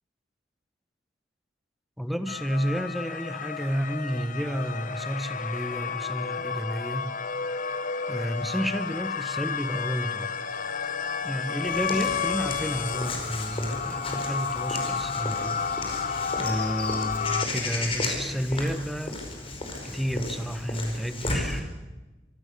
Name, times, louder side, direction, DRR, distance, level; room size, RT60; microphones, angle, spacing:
voice 1, 2.0-7.1 8.1-10.3 11.2-15.7 16.4-19.2 19.8-21.7, equal, ahead, 9 dB, 1.3 m, -31 dB
sound 1, 2.3-17.5, left 6 dB, 50° left, 1.0 m, -31 dB
Walk footsteps / Bird vocalization bird call bird song, 11.6-21.6, left 2 dB, 30° left, 4.9 m, -34 dB
25.5 x 24.0 x 6.9 m, 1.1 s
head